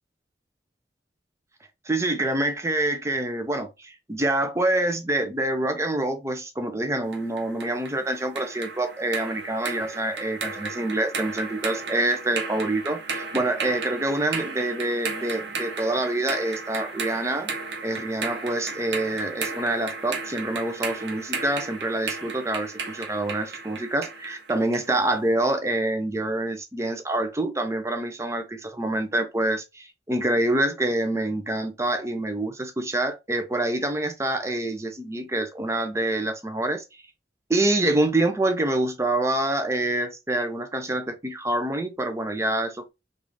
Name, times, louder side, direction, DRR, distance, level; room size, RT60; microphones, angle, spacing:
voice 1, 1.9-17.5 17.8-36.8 37.5-42.9, right 1 dB, 15° right, 0.6 m, -26 dB
sound 1, 7.1-24.9, right 4 dB, 75° right, 0.9 m, -34 dB
3.6 x 2.6 x 3.1 m
head